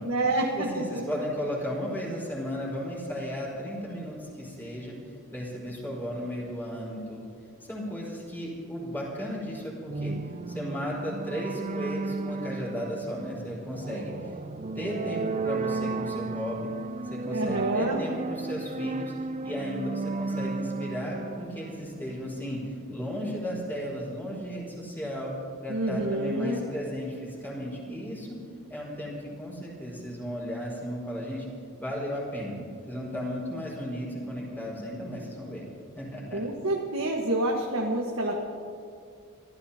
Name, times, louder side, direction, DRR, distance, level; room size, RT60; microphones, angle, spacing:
voice 1, 0.0-1.0 10.0-10.2 17.3-18.0 25.7-26.6 36.3-38.3, right 1 dB, 75° right, -1 dB, 1.5 m, -28 dB
voice 2, 0.6-5.0 5.3-7.3 7.6-10.1 10.5-14.3 14.7-16.7 17.1-19.1 19.4-25.3 25.6-28.4 28.7-31.4 31.8-32.5 32.9-35.6 36.0-36.4, equal, 10° left, -5 dB, 5.1 m, -35 dB
sound 1, 9.9-22.4, right 3 dB, 35° right, 0.5 m, -34 dB
29.5 x 14.5 x 2.9 m, 2.4 s
head